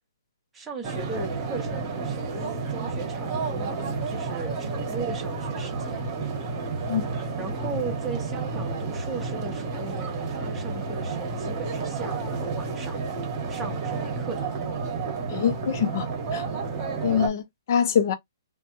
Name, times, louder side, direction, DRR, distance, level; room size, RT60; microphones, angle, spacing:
voice 1, 0.5-6.1 7.4-13.0 13.5-14.5, right 4 dB, 5° right, 0.7 m, -37 dB
sound 1, 0.8-17.3, right 4 dB, 25° right, 1.0 m, -31 dB
voice 2, 15.3-16.4 17.0-18.2, left 8 dB, 40° left, 0.6 m, -24 dB
3.2 x 2.2 x 2.9 m
hypercardioid pair, 165°, 2 cm